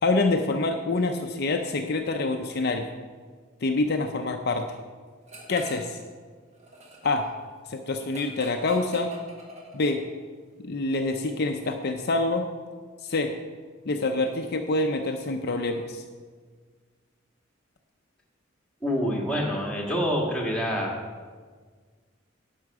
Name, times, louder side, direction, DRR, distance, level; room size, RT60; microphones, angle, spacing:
voice 1, 0.0-2.9 3.6-4.6 5.5-6.0 7.0-7.3 7.7-9.1 9.7-10.0 10.6-12.5 13.0-13.3 13.9-16.0, left 2 dB, 50° left, 4 dB, 0.6 m, -26 dB
sound 1, 5.3-6.0 6.3-10.1, right 1 dB, 35° right, 1.6 m, -45 dB
voice 2, 18.8-20.9, equal, 5° left, -3 dB, 1.7 m, -26 dB
11.0 x 6.5 x 4.8 m, 1.6 s
head